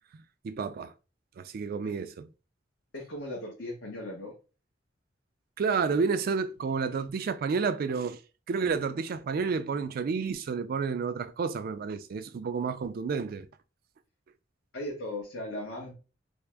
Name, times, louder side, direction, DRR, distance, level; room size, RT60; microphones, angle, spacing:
voice 1, 0.4-0.9 1.4-2.3 5.6-8.2 8.5-13.5, right 5 dB, 50° right, 0.3 m, -30 dB
voice 2, 2.9-4.3 14.7-15.9, left 1 dB, 70° left, 0.9 m, -37 dB
3.4 x 2.0 x 3.3 m
head